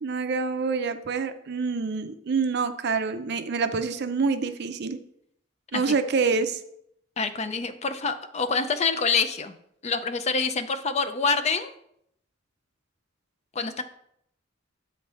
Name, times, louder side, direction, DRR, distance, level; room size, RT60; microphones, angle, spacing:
voice 1, 0.0-5.0 5.7-6.6, right 4 dB, 60° right, 10 dB, 0.5 m, -26 dB
voice 2, 7.2-9.5 9.8-11.7 13.5-13.8, left 4 dB, 35° left, 10 dB, 0.5 m, -26 dB
7.8 x 3.3 x 5.4 m, 0.72 s
head